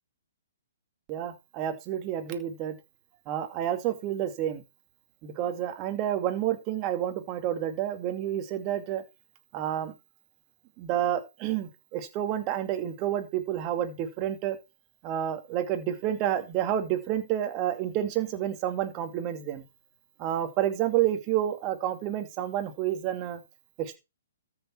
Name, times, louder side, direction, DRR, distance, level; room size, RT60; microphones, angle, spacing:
voice 1, 1.1-2.8 3.3-4.6 5.2-9.0 9.5-9.9 10.8-14.6 15.0-19.6 20.2-23.4 23.8-24.0, right 11 dB, 30° right, 7 dB, 2.4 m, -29 dB
13.5 x 6.7 x 4.6 m, 0.27 s
hypercardioid pair, 140°, 0 cm